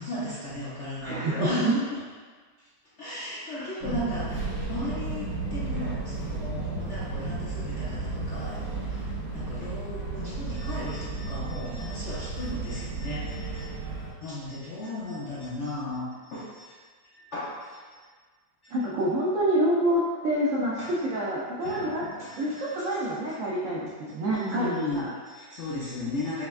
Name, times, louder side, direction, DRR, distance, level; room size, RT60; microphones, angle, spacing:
voice 1, 0.0-2.0 3.0-13.8 14.2-16.8 17.1-17.8 18.6-18.7 20.8-20.9 21.6-23.2 24.3-26.4, left 1 dB, 60° left, -9 dB, 0.7 m, -35 dB
voice 2, 1.0-1.5 3.5-3.7 18.7-22.1 22.4-25.1, right 1 dB, 85° right, -5 dB, 0.7 m, -27 dB
Fixed-wing aircraft airplane, 3.8-14.1, right 3 dB, 55° right, 1.6 m, -33 dB
5.9 x 2.2 x 2.3 m, 1.5 s
omnidirectional pair, 1.9 m